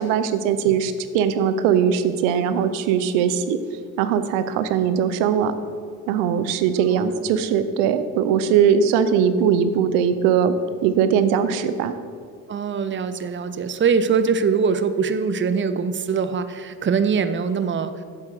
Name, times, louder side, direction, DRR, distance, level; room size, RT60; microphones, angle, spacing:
voice 1, 0.0-3.6 4.0-5.5 6.1-10.5 10.8-11.9, right 8 dB, 80° right, 12 dB, 0.6 m, -20 dB
voice 2, 12.5-18.0, right 5 dB, 25° right, 12 dB, 0.6 m, -22 dB
7.7 x 7.4 x 4.7 m, 2.2 s
hypercardioid pair, 45°, 43 cm